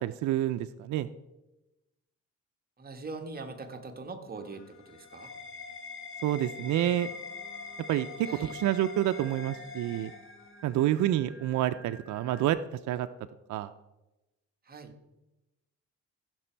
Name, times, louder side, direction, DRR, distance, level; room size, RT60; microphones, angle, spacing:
voice 1, 0.0-1.1 6.2-7.1 7.9-10.1 10.6-12.6 12.9-13.1 13.5-13.7, right 13 dB, 70° right, 9 dB, 0.5 m, -28 dB
voice 2, 2.8-5.3 8.2-8.6 14.6-14.9, right 3 dB, 30° right, 4 dB, 1.5 m, -42 dB
sound 1, 4.4-10.8, left 4 dB, 45° left, 1.7 m, -43 dB
Singing, 6.7-12.5, right 3 dB, 5° right, 2.5 m, -54 dB
15.5 x 6.1 x 4.5 m, 1.0 s
cardioid pair, 90°, 30 cm